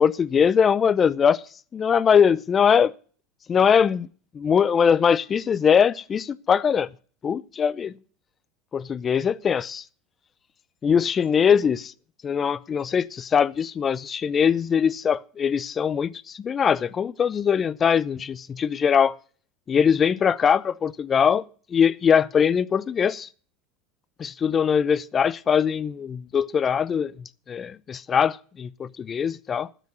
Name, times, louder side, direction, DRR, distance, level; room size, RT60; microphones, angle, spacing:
voice 1, 0.0-1.4 1.7-2.9 3.5-4.1 4.3-6.9 7.2-7.9 8.7-9.8 10.8-11.9 12.2-19.2 19.7-21.4 21.7-23.3 24.2-27.1 27.5-29.7, left 7 dB, 30° left, 0.6 m, -21 dB
12.0 x 6.2 x 7.8 m
hypercardioid pair, 95°, 0 cm